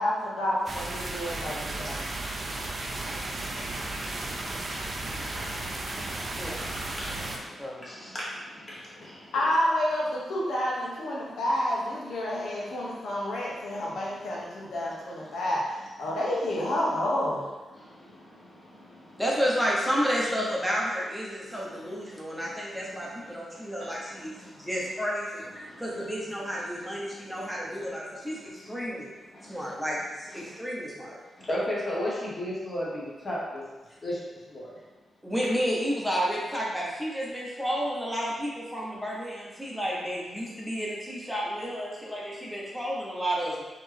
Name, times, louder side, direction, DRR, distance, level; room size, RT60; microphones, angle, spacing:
voice 1, 0.0-2.0 9.3-15.6 16.0-17.5, left 1 dB, 90° left, -5 dB, 1.1 m, -29 dB
sound 1, 0.7-7.4, right 2 dB, 35° right, 0.5 m, -34 dB
voice 2, 1.9-9.4 12.6-12.9 14.3-15.4 17.7-19.2 21.4-24.9 25.5-26.1 26.5-28.9 29.3-29.8 30.3-30.6 31.2-33.6 34.0-34.8 39.5-39.7, left 1 dB, 30° left, -6 dB, 1.2 m, -40 dB
voice 3, 19.2-25.4 25.8-29.1 29.5-31.1 35.2-43.6, equal, ahead, -5 dB, 0.9 m, -31 dB
4.2 x 3.0 x 3.3 m, 1.2 s
wide cardioid pair, 155°, 0 cm